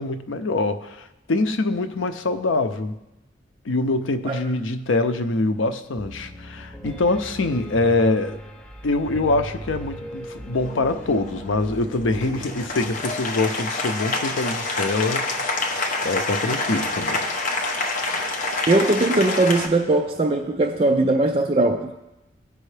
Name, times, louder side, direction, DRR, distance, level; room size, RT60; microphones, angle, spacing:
voice 1, 0.0-3.0 3.6-8.4 8.8-15.7 16.0-17.3, left 2 dB, 80° left, 9 dB, 0.6 m, -24 dB
Piano, 6.0-13.0, equal, 10° left, 2.2 m, -37 dB
Applause, 10.5-19.7, left 2 dB, 40° left, 0.8 m, -27 dB
voice 2, 18.7-21.9, right 2 dB, 30° right, 2 dB, 0.4 m, -20 dB
16.0 x 5.4 x 3.3 m, 0.96 s
head